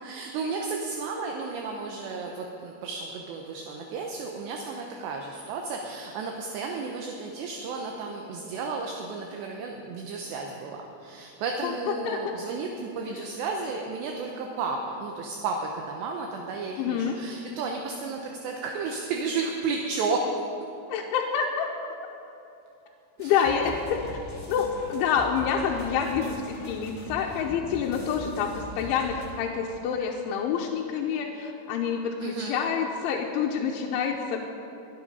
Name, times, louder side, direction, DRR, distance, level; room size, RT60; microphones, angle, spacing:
voice 1, 0.0-20.3 23.2-23.3 32.2-32.6, right 4 dB, 75° right, 1 dB, 2.9 m, -33 dB
voice 2, 16.8-17.2 20.9-21.7 23.2-24.2 24.5-34.4, left 7 dB, 85° left, -1 dB, 3.2 m, -27 dB
sound 1, 23.2-29.3, left 1 dB, 25° left, 1.2 m, -41 dB
23.0 x 8.0 x 5.4 m, 2.9 s
omnidirectional pair, 5.4 m